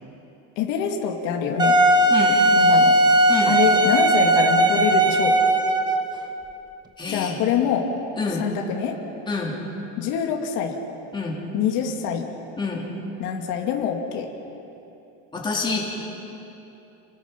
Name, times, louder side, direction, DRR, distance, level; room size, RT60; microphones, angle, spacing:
voice 1, 0.6-1.8 2.6-3.0 3.5-5.4 7.1-7.9 8.4-8.9 10.0-10.8 11.5-12.3 13.2-14.3, left 8 dB, 70° left, 1 dB, 2.4 m, -25 dB
Wind instrument woodwind instrument, 1.6-6.1, right 1 dB, 10° right, 1.2 m, -17 dB
voice 2, 7.0-7.4 8.2-8.4 9.3-9.6 11.1-11.4 12.6-12.9 15.3-15.8, left 4 dB, 15° left, -3 dB, 3.3 m, -27 dB
29.0 x 19.5 x 5.9 m, 2.9 s
cardioid pair, 165°, 33 cm